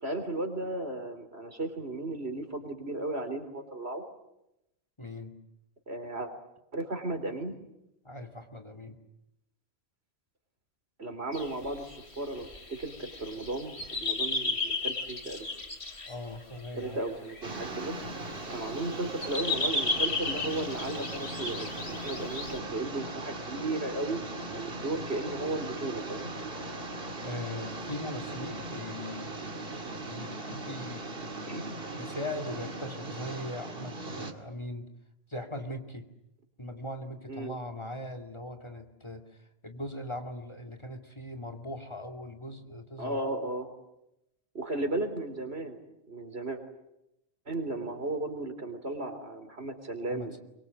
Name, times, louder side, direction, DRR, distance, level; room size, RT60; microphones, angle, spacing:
voice 1, 0.0-4.0 5.9-6.3 6.7-7.6 11.0-15.5 16.7-18.0 18.5-24.2 24.5-26.3 31.5-31.7 34.1-34.2 37.3-37.5 43.0-43.7 44.5-45.8 46.1-46.6 47.5-50.4, right 2 dB, 80° right, 7 dB, 4.2 m, -35 dB
voice 2, 5.0-5.3 8.0-9.0 16.1-17.0 27.2-29.5 30.0-31.1 32.0-34.9 35.3-36.1 36.6-43.2 50.1-50.4, left 1 dB, 25° left, 6 dB, 2.5 m, -40 dB
sound 1, 11.3-16.1 16.6-17.8 18.3-22.6, left 3 dB, 90° left, 3.2 m, -34 dB
sound 2, 17.4-34.3, right 2 dB, 60° right, 2.4 m, -39 dB
23.5 x 23.5 x 9.5 m, 0.86 s
omnidirectional pair, 1.1 m